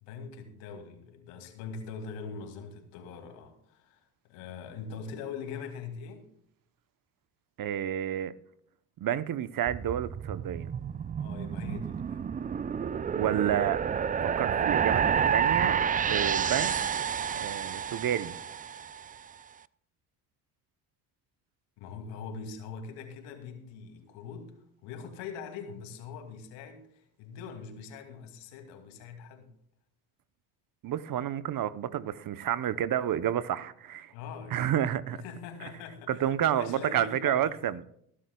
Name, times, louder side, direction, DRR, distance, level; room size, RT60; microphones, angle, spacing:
voice 1, 0.0-4.0 4.3-6.3 11.2-12.2 21.8-24.5 24.8-29.5 34.1-34.7 35.1-37.5, left 5 dB, 80° left, 2.6 m, -42 dB
voice 2, 7.6-8.3 9.0-10.7 13.1-13.8 14.2-15.8 16.1-17.0 17.3-18.3 30.8-34.1 34.5-35.2 36.1-37.8, right 10 dB, 50° right, 0.9 m, -30 dB
sound 1, 9.7-19.0, right 7 dB, 20° right, 0.4 m, -29 dB
20.0 x 11.5 x 2.3 m
supercardioid pair, 70°, 44 cm